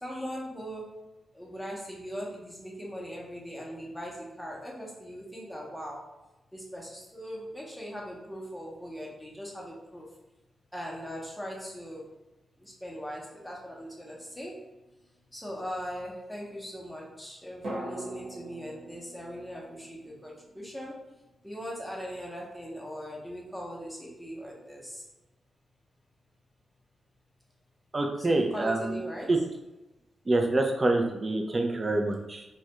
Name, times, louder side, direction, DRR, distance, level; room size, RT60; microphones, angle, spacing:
voice 1, 0.0-1.0 1.3-6.1 6.5-10.1 10.7-12.0 12.6-14.6 15.3-21.0 21.4-25.0 28.2-29.3, equal, 5° left, -3 dB, 0.7 m, -40 dB
sound 1, 14.1-15.2 17.6-21.6 21.9-22.0, right 1 dB, 80° right, 0.9 m, -44 dB
voice 2, 27.9-29.0 29.3-29.4 30.3-32.4, right 2 dB, 30° right, 3 dB, 0.4 m, -26 dB
2.3 x 2.1 x 2.9 m, 1.0 s
cardioid pair, 95°, 0 cm